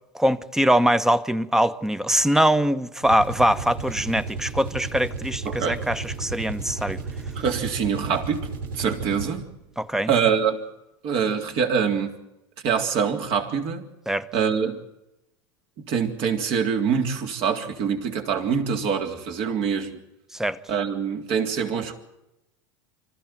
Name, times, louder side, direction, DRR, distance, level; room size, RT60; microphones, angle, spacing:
voice 1, 0.1-7.0 9.8-10.1 14.1-14.3 20.3-20.6, equal, 5° right, 1.0 m, -22 dB
sound 1, 3.0-9.5, right 4 dB, 75° right, 3.2 m, -33 dB
voice 2, 5.5-5.8 7.4-8.5 8.8-9.4 10.1-10.6 11.0-12.2 12.6-13.9 14.3-14.8 15.8-20.0 20.7-22.0, right 6 dB, 55° right, 3.6 m, -24 dB
26.0 x 14.5 x 9.1 m
hypercardioid pair, 95°, 11 cm